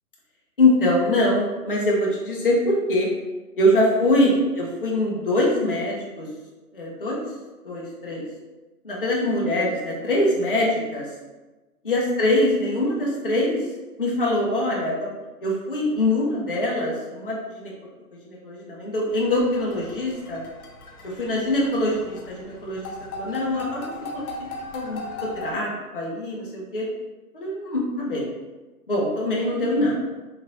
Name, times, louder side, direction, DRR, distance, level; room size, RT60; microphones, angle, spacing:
voice 1, 0.6-3.1 3.6-6.3 6.7-7.2 7.6-8.2 8.8-11.1 11.8-13.7 14.0-15.1 15.4-17.7 18.2-20.4 21.0-24.2 24.7-25.0 25.3-26.8 27.3-28.3 28.9-30.0, left 1 dB, 40° left, -4 dB, 0.4 m, -23 dB
sound 1, 19.1-25.6, left 2 dB, 65° left, 0.7 m, -38 dB
3.0 x 2.8 x 2.5 m, 1.2 s
hypercardioid pair, 160°, 47 cm